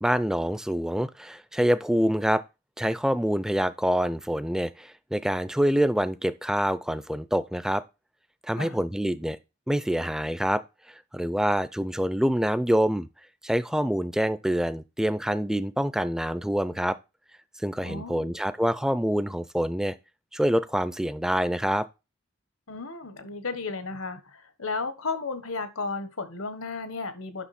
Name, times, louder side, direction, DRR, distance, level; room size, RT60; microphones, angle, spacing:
voice 1, 0.0-2.4 2.8-7.8 8.4-9.4 9.7-10.6 10.9-13.1 13.4-17.0 17.6-19.9 20.3-21.9, equal, 5° right, 0.4 m, -26 dB
voice 2, 17.8-18.4 22.7-27.5, left 3 dB, 85° left, 1.3 m, -34 dB
9.9 x 6.2 x 4.2 m
head